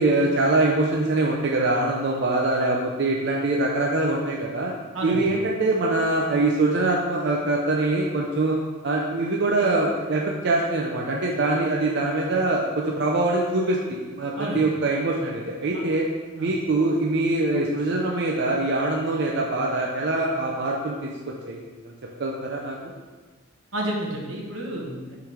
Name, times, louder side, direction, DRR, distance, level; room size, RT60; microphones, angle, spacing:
voice 1, 0.0-4.7 5.0-8.5 8.8-16.1 16.4-21.1 21.5-21.9 22.2-22.8, right 2 dB, 60° right, -1 dB, 0.6 m, -23 dB
voice 2, 23.7-25.2, right 1 dB, 85° right, -1 dB, 1.2 m, -30 dB
5.6 x 3.9 x 4.9 m, 1.4 s
head